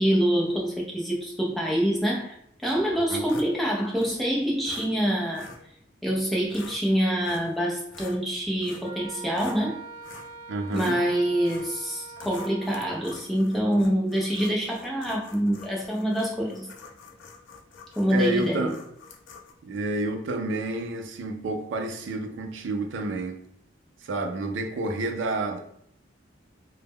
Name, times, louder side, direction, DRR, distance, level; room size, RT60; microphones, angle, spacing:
voice 1, 0.0-2.3 2.6-5.5 6.0-9.8 10.7-16.7 18.0-18.7, equal, ahead, -3 dB, 0.4 m, -26 dB
sound 1, 2.6-3.5 3.9-4.2 4.6-4.9 5.3-5.6 6.3-6.8 7.2-7.6 7.9-9.6 10.0-10.3 10.7-11.0 11.4-11.7 12.1-19.5, left 4 dB, 80° left, 0.4 m, -46 dB
Wind instrument woodwind instrument, 8.8-13.2, right 5 dB, 45° right, 0.8 m, -43 dB
voice 2, 10.5-11.0 18.1-18.8 19.7-23.4 24.0-25.6, right 2 dB, 75° right, 5 dB, 0.4 m, -29 dB
2.1 x 2.0 x 3.4 m, 0.70 s
head